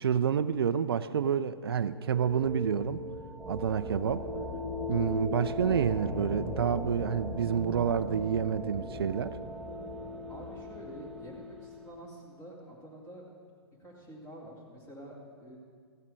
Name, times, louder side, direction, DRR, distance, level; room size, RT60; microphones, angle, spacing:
voice 1, 0.0-3.0 3.5-4.3 4.9-9.4, right 7 dB, 60° right, 11 dB, 0.5 m, -28 dB
sound 1, 1.6-12.2, left 2 dB, ahead, 1.2 m, -39 dB
voice 2, 10.3-13.2 13.8-15.6, right 1 dB, 15° left, -5 dB, 2.5 m, -48 dB
15.0 x 7.3 x 8.8 m, 2.1 s
figure-of-eight pair, 120°, 14 cm